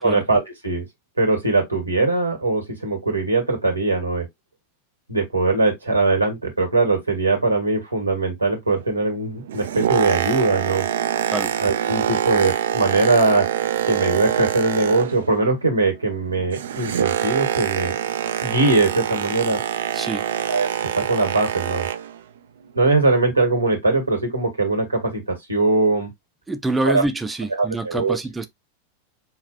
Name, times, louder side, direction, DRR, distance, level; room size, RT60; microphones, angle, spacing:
voice 1, 0.0-0.8 1.2-4.3 5.1-10.9 11.6-13.5 13.9-17.9 18.4-19.6 20.5-21.9 22.7-26.1 26.8-27.0 27.6-28.2, right 3 dB, 80° right, 1.5 m, -21 dB
Boat Water vehicle, 9.3-15.4 15.7-22.2 22.8-22.9, right 10 dB, 60° right, 0.4 m, -25 dB
voice 2, 19.9-20.2 26.5-28.5, right 2 dB, 10° right, 0.5 m, -26 dB
5.1 x 2.4 x 2.7 m
figure-of-eight pair, 90°, 0 cm